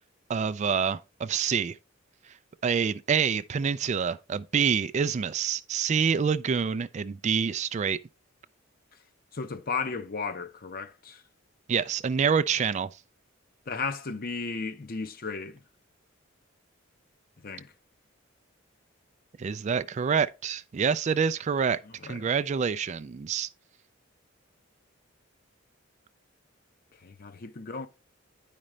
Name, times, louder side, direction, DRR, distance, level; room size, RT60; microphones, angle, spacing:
voice 1, 0.3-1.8 2.6-8.0 11.7-12.9 19.4-23.5, right 6 dB, 35° right, 0.3 m, -27 dB
voice 2, 9.3-11.2 13.7-15.6 17.4-17.7 22.0-22.2 27.0-27.9, left 4 dB, 45° left, 0.7 m, -34 dB
9.9 x 5.1 x 3.1 m
head